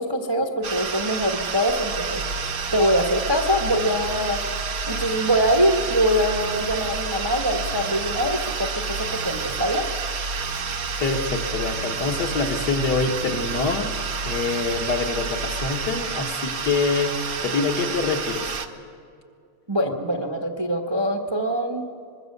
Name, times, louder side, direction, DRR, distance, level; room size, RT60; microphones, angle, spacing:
voice 1, 0.0-4.4 4.9-9.9 19.7-21.9, equal, 15° right, 3 dB, 1.1 m, -23 dB
sound 1, 0.6-18.7, right 6 dB, 45° right, 1.4 m, -30 dB
sound 2, 1.1-17.2 17.6-17.7, right 1 dB, 85° right, 3.2 m, -35 dB
voice 2, 11.0-13.9 14.2-17.2 17.4-18.5, left 4 dB, 50° left, 2 dB, 2.1 m, -25 dB
24.0 x 21.5 x 6.8 m, 2.4 s
omnidirectional pair, 2.4 m